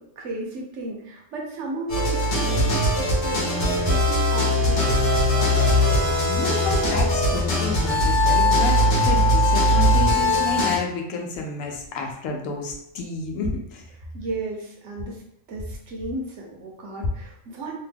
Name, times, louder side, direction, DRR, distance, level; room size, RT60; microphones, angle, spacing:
voice 1, 0.0-5.2 14.1-15.2 15.5-17.8, right 2 dB, 65° right, -2 dB, 0.9 m, -34 dB
sound 1, 1.9-10.8, left 1 dB, 50° left, 1.0 m, -20 dB
voice 2, 5.9-13.8, left 2 dB, 80° left, 2 dB, 1.0 m, -30 dB
2.8 x 2.2 x 3.3 m, 0.76 s
omnidirectional pair, 1.4 m